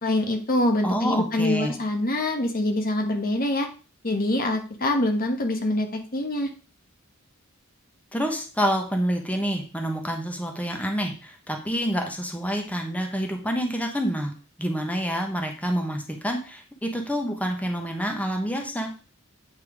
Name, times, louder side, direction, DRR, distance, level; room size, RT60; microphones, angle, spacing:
voice 1, 0.0-3.7 4.0-6.5, left 1 dB, 45° left, 4 dB, 1.4 m, -25 dB
voice 2, 0.8-1.8 8.1-14.3 14.6-18.9, equal, 5° left, 3 dB, 1.4 m, -27 dB
9.0 x 4.5 x 4.9 m, 0.36 s
head